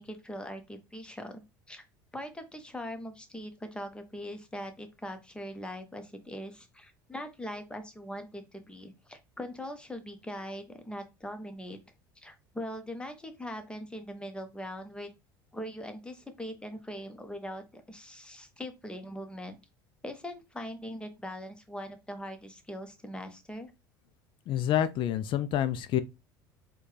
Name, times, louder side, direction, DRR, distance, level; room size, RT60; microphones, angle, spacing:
voice 1, 0.0-1.4 1.7-1.8 2.1-11.8 12.2-15.1 15.5-19.5 20.0-23.7, equal, 10° left, 0.9 m, -41 dB
voice 2, 24.5-26.0, left 11 dB, 50° left, 0.4 m, -28 dB
4.3 x 2.3 x 3.2 m
hypercardioid pair, 75°, 11 cm